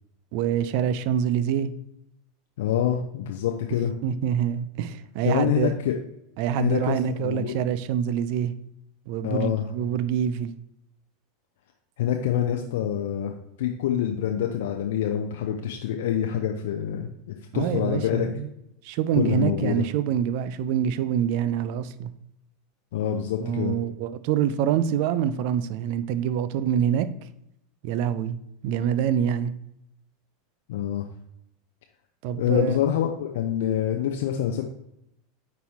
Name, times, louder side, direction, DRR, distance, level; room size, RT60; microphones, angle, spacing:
voice 1, 0.3-1.7 4.0-5.7 6.4-8.5 9.1-10.5 17.5-18.5 18.8-22.1 23.4-27.1 27.8-28.4 28.6-29.5 32.2-32.8, right 9 dB, 55° right, 0.4 m, -25 dB
voice 2, 2.6-3.9 5.2-6.0 6.6-7.5 9.2-9.7 12.0-18.3 19.1-19.8 22.9-23.8 30.7-31.1 32.3-34.6, left 10 dB, 60° left, 0.5 m, -26 dB
9.2 x 4.1 x 2.9 m
figure-of-eight pair, 85°, 0 cm